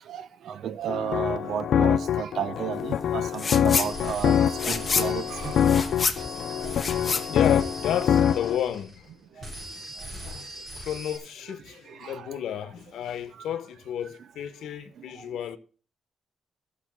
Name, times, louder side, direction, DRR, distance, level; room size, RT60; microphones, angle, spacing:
voice 1, 0.1-4.4 4.6-5.9 12.0-12.2, right 8 dB, 65° right, 0.7 m, -33 dB
sound 1, 0.9-8.6, left 9 dB, 65° left, 0.5 m, -25 dB
sound 2, 3.3-3.9 4.2-8.2, left 5 dB, 30° left, 1.0 m, -29 dB
sound 3, 3.7-9.1 9.4-11.2, right 1 dB, 30° right, 6.0 m, -40 dB
voice 2, 6.5-9.9 10.2-15.6, left 10 dB, 85° left, 1.0 m, -33 dB
14.0 x 6.5 x 6.0 m
cardioid pair, 155°, 0 cm